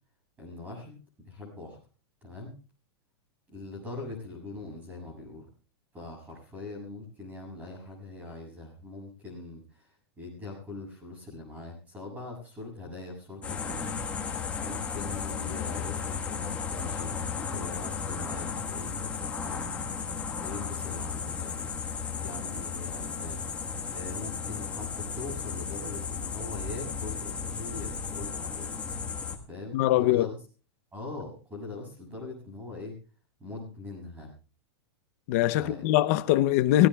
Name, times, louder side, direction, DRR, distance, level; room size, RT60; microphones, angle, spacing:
voice 1, 0.4-1.8 2.2-2.5 3.5-5.5 5.9-13.9 14.6-17.1 17.5-19.6 20.4-21.8 22.2-23.4 23.9-28.7 29.5-30.4 30.9-33.0 33.4-34.3 35.6-35.8, left 3 dB, 10° right, 7.1 m, -41 dB
sound 1, 13.4-29.4, left 6 dB, 10° left, 1.4 m, -34 dB
voice 2, 29.7-30.3 35.3-36.9, left 14 dB, 35° left, 0.7 m, -22 dB
26.0 x 16.0 x 2.3 m
supercardioid pair, 175°, 14 cm